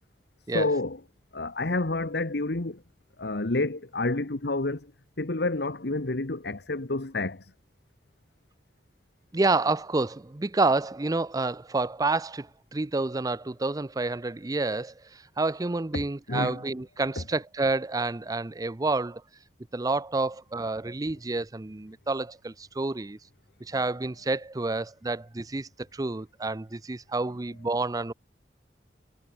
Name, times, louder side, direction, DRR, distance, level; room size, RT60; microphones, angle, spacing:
voice 1, 0.5-1.0 1.3-2.8 3.2-4.9 5.2-7.5 15.9-16.6 17.2-17.3, left 2 dB, 65° left, 1.4 m, -29 dB
voice 2, 9.3-19.2 19.7-23.2 23.6-28.1, right 3 dB, 20° right, 0.5 m, -29 dB
head